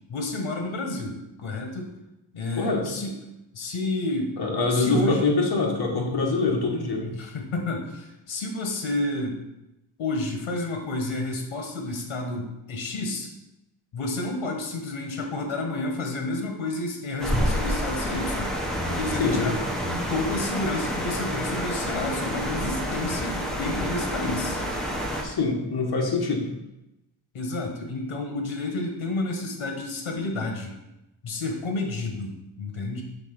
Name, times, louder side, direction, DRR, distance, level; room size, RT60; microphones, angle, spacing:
voice 1, 0.1-1.9 2.3-3.1 3.5-4.3 4.7-5.3 7.0-9.4 10.0-13.3 13.9-18.5 18.8-19.5 20.1-24.6 27.3-30.7 31.2-33.0, left 2 dB, 80° left, 3 dB, 1.2 m, -30 dB
voice 2, 4.4-7.1 19.2-19.6 25.2-26.5, left 3 dB, 50° left, 0 dB, 1.3 m, -24 dB
sound 1, 17.2-25.2, equal, ahead, 0.8 m, -28 dB
5.9 x 3.7 x 5.9 m, 0.94 s
wide cardioid pair, 175°, 48 cm